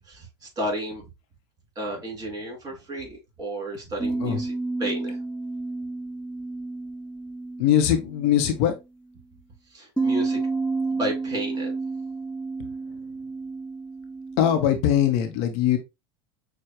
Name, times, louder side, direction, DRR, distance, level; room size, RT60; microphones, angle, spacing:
voice 1, 0.1-1.0 1.7-4.5 4.8-5.2 9.7-10.4 10.9-11.7, right 1 dB, 25° right, 3.0 m, -32 dB
sound 1, 4.0-8.6 10.0-15.2, right 3 dB, 5° left, 0.7 m, -31 dB
voice 2, 7.6-8.7 14.4-15.8, left 10 dB, 60° left, 0.9 m, -21 dB
6.3 x 2.3 x 3.0 m
hypercardioid pair, 85°, 14 cm